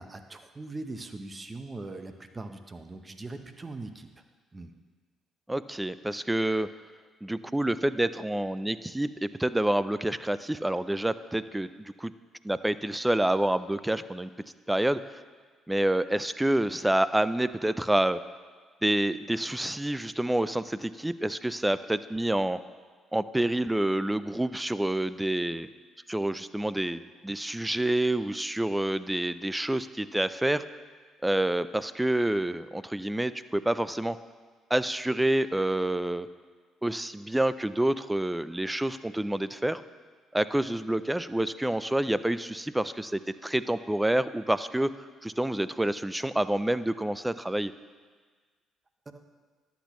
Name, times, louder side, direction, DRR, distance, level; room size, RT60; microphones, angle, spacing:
voice 1, 0.0-4.1 4.5-4.7 49.1-49.2, right 2 dB, 25° right, 8 dB, 0.8 m, -41 dB
voice 2, 5.5-6.7 7.2-12.1 12.4-14.3 14.7-15.0 15.7-18.2 18.8-22.6 23.1-25.7 26.1-30.6 31.2-34.2 34.7-36.3 36.8-39.8 40.3-44.9 45.2-47.7, right 1 dB, 10° right, 14 dB, 0.4 m, -28 dB
11.5 x 8.2 x 3.1 m, 1.5 s
supercardioid pair, 60°, 0 cm